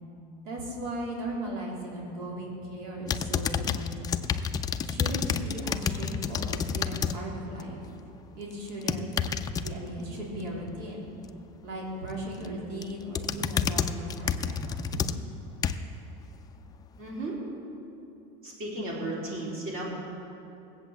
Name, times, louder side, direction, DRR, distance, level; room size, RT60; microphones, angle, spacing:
voice 1, 0.4-4.2 4.8-7.8 8.3-9.1 9.5-11.0 11.6-15.0, right 1 dB, 70° right, -3 dB, 3.4 m, -37 dB
sound 1, 3.1-7.2 7.5-7.9 8.7-9.7 12.1-12.5 12.8-16.0 16.5-16.6, left 7 dB, 20° left, 0.4 m, -29 dB
voice 2, 17.0-17.4 18.4-19.8, right 2 dB, 45° right, -4 dB, 4.0 m, -34 dB
18.0 x 8.3 x 7.2 m, 2.9 s
cardioid pair, 155°, 21 cm